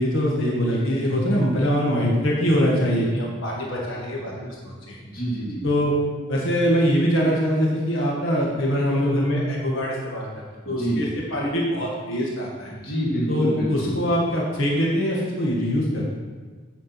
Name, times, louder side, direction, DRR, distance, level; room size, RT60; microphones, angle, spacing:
voice 1, 0.0-5.0 5.6-5.9 6.3-10.3 10.7-12.7 13.3-16.1, equal, 75° left, -3 dB, 2.0 m, -23 dB
voice 2, 5.0-5.7 10.6-11.0 12.7-14.0, right 1 dB, 45° left, -6 dB, 2.5 m, -27 dB
9.6 x 5.2 x 6.0 m, 1.4 s
head